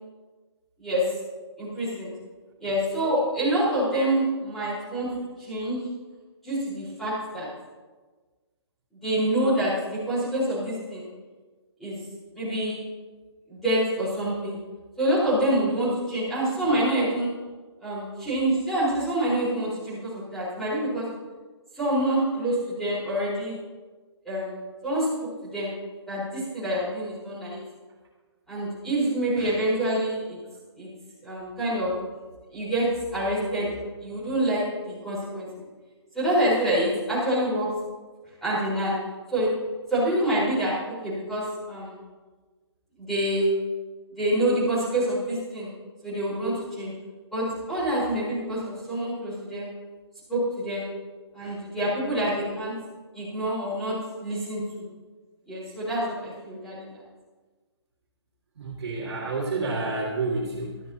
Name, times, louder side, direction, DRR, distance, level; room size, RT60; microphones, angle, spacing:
voice 1, 1.6-2.1 2.6-5.1 5.4-5.8 6.4-7.5 9.0-11.0 11.8-12.0 12.3-12.8 13.5-14.6 15.0-17.3 17.8-21.0 21.7-23.5 24.2-24.6 24.8-25.1 25.4-25.7 26.1-27.6 28.5-30.4 30.8-30.9 31.2-31.9 32.5-33.7 34.0-35.5 36.1-37.7 38.4-38.9 39.3-39.5 39.9-41.9 43.0-43.5 44.1-45.7 46.0-46.9 47.3-49.7 50.3-50.9 51.3-52.7 53.1-53.9 54.2-54.8 55.5-56.9, right 1 dB, ahead, -11 dB, 4.7 m, -26 dB
voice 2, 58.6-60.8, right 3 dB, 60° right, -6 dB, 2.5 m, -29 dB
15.5 x 12.5 x 2.9 m, 1.4 s
hypercardioid pair, 165°, 15 cm